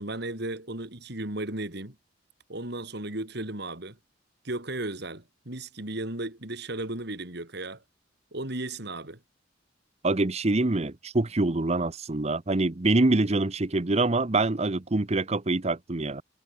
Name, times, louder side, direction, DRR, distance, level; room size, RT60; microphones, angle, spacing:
voice 1, 0.0-1.9 2.5-4.0 4.4-7.8 8.3-9.2, right 2 dB, 60° right, 3.4 m, -35 dB
voice 2, 10.0-16.2, right 2 dB, 35° right, 0.9 m, -25 dB
head